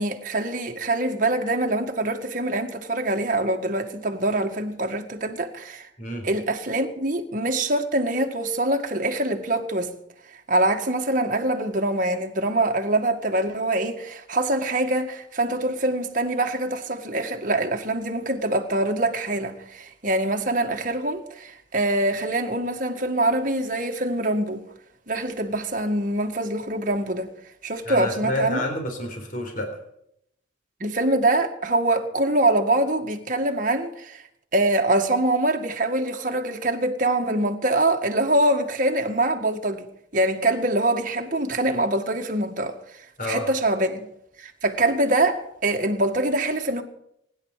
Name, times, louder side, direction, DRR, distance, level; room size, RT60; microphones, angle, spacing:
voice 1, 0.0-5.9 6.2-9.9 10.5-24.6 25.1-27.3 27.6-28.6 30.8-34.2 34.5-42.8 43.2-44.1 44.4-46.8, right 2 dB, 40° right, 1.8 m, -24 dB
voice 2, 27.8-29.7 43.2-43.5, left 1 dB, 40° left, 4.0 m, -29 dB
24.5 x 11.0 x 5.0 m
head